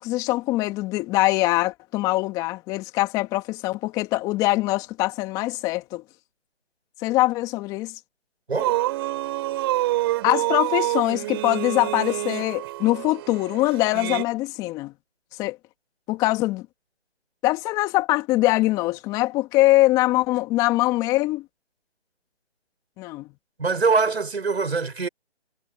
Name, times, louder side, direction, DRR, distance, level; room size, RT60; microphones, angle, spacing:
voice 1, 0.0-6.0 7.0-7.9 10.2-14.9 15.4-15.6 16.1-16.7 17.4-21.4 23.0-23.3, left 18 dB, 10° left, 2.2 m, -23 dB
sound 1, 8.6-14.2, right 17 dB, 20° right, 7.9 m, -27 dB
voice 2, 23.6-25.1, right 4 dB, 70° right, 5.6 m, -23 dB
figure-of-eight pair, 160°, 33 cm